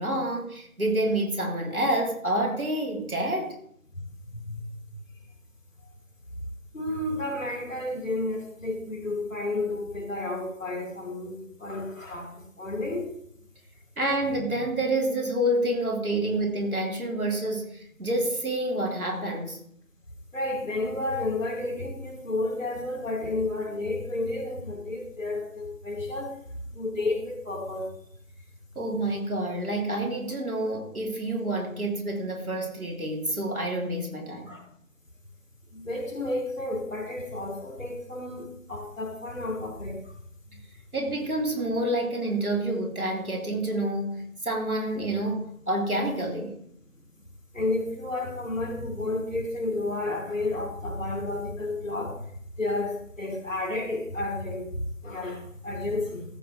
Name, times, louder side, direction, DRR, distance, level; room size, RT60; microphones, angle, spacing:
voice 1, 0.0-3.5 14.0-19.6 28.7-34.6 40.9-46.5, right 1 dB, 80° right, 0 dB, 3.4 m, -28 dB
voice 2, 4.3-4.6 4.9-5.0 6.7-13.1 20.3-26.3 26.7-27.9 34.5-34.6 35.7-40.0 47.5-52.2 52.6-56.2, left 2 dB, 60° left, 2 dB, 2.8 m, -31 dB
14.0 x 7.0 x 3.4 m, 0.69 s
figure-of-eight pair, 170°, 43 cm